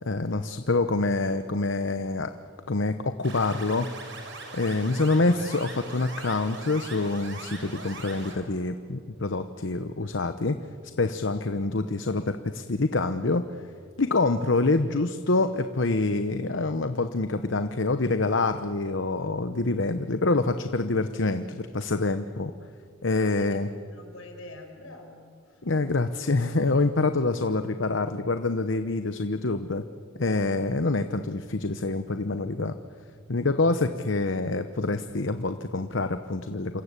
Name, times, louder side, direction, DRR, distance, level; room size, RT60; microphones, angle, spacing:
voice 1, 0.0-2.4 2.7-3.9 4.5-10.6 11.0-13.4 14.0-22.5 23.0-23.7 25.6-29.8 30.2-32.7 33.3-36.8, left 3 dB, 65° left, 9 dB, 0.9 m, -26 dB
sound 1, 3.2-8.4, right 3 dB, 60° right, 5.8 m, -41 dB
voice 2, 23.1-25.7, left 2 dB, 80° left, 4 dB, 5.4 m, -47 dB
28.5 x 25.0 x 8.3 m, 2.3 s
head